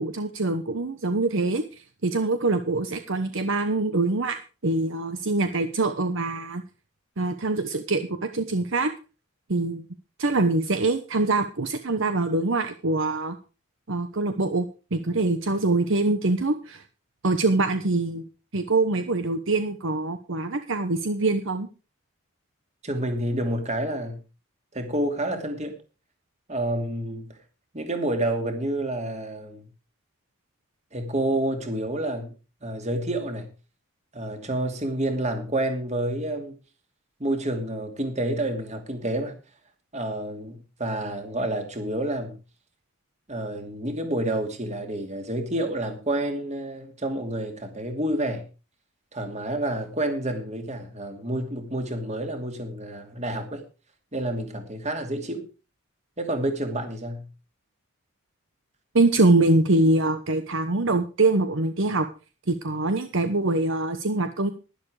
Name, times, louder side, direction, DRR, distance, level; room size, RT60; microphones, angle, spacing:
voice 1, 0.0-6.6 7.2-8.9 9.5-9.8 10.2-13.4 13.9-14.7 14.9-16.8 17.2-18.2 18.5-21.7 58.9-62.1 62.5-64.5, right 2 dB, 60° right, 1.0 m, -24 dB
voice 2, 22.8-24.2 24.7-25.8 26.5-27.3 27.7-29.7 30.9-32.3 32.6-33.5 34.1-36.6 37.2-39.3 39.9-42.4 43.3-48.4 49.1-53.7 54.1-55.5 56.2-57.3, right 1 dB, 30° right, 2.5 m, -29 dB
12.0 x 11.0 x 4.9 m
head